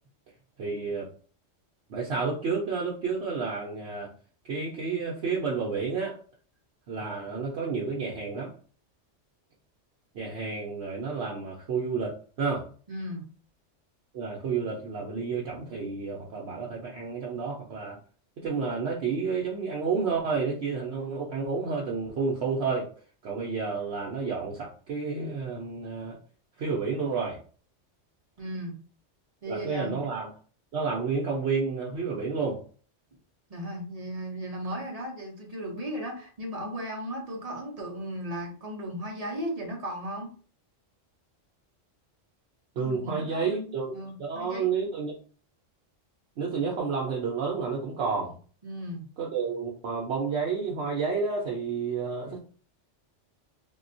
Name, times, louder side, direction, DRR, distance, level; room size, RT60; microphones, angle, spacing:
voice 1, 0.6-1.1 1.9-4.1 4.5-6.2 6.9-8.5 10.1-12.6 14.1-18.0 18.4-22.9 23.2-26.2 26.6-27.4 29.5-30.3 30.7-32.6 42.8-43.9 44.2-45.1 46.4-48.4 49.2-52.4, right 5 dB, 65° right, -3 dB, 0.9 m, -30 dB
voice 2, 12.9-13.2 28.4-28.8 29.4-30.0 33.5-40.3 42.8-44.7 48.6-49.0, equal, 40° right, 0 dB, 0.6 m, -36 dB
3.6 x 2.3 x 2.5 m, 0.41 s
omnidirectional pair, 1.3 m